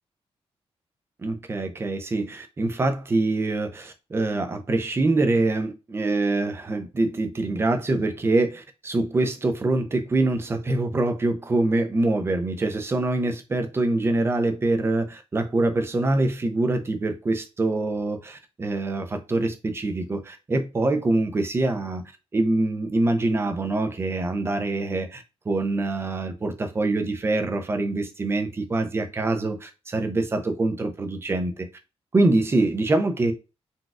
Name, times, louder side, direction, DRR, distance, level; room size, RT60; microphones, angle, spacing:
voice 1, 1.2-22.0 22.3-31.7 32.1-33.3, right 2 dB, 20° right, 0.4 m, -24 dB
3.9 x 2.3 x 2.4 m
wide cardioid pair, 155°, 11 cm